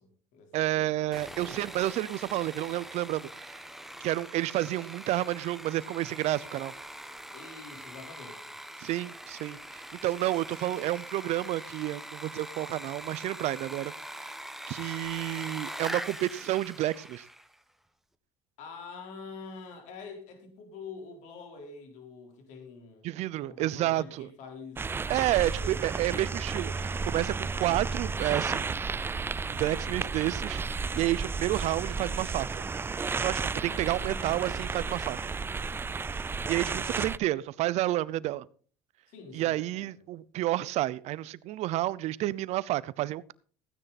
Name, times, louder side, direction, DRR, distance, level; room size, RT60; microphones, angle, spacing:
voice 1, 0.0-0.9 7.3-8.5 18.6-23.1 23.4-24.9 25.6-26.3 33.6-35.8 39.1-40.0, left 4 dB, 70° left, 4.1 m, -47 dB
voice 2, 0.5-3.3 4.0-6.7 8.8-14.3 14.7-17.2 23.0-24.3 25.1-28.8 29.4-32.6 33.1-35.2 36.5-38.5 39.3-43.3, right 15 dB, 60° right, 0.7 m, -30 dB
Sawing, 1.1-17.5, right 1 dB, ahead, 1.2 m, -43 dB
sound 1, 24.8-37.2, right 4 dB, 15° right, 0.5 m, -33 dB
15.5 x 9.9 x 4.2 m
supercardioid pair, 100°, 13 cm